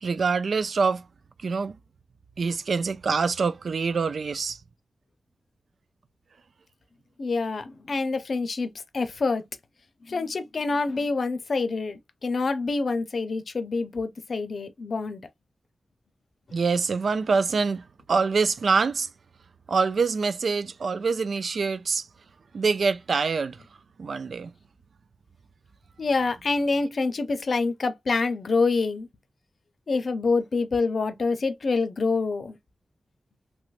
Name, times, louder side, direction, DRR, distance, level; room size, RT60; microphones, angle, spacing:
voice 1, 0.0-1.0 1.4-1.8 2.4-4.6 16.5-17.8 18.1-19.1 19.7-22.1 22.5-23.6 24.0-24.5, right 4 dB, 75° right, 0.3 m, -25 dB
voice 2, 7.2-9.4 10.1-15.2 26.0-29.1 29.9-32.6, left 3 dB, 60° left, 0.6 m, -26 dB
3.2 x 2.9 x 2.4 m
wide cardioid pair, 95°, 0 cm